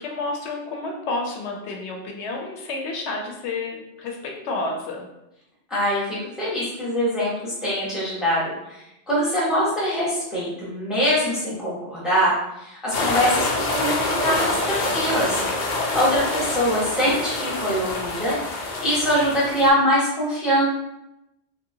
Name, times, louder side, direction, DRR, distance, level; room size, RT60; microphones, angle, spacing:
voice 1, 0.0-5.1, left 3 dB, 80° left, 1 dB, 0.9 m, -30 dB
voice 2, 5.7-12.3 12.6-20.6, equal, ahead, -7 dB, 0.7 m, -23 dB
sound 1, 12.9-19.7, left 2 dB, 55° left, 0.6 m, -26 dB
2.7 x 2.7 x 2.7 m, 0.89 s
omnidirectional pair, 1.2 m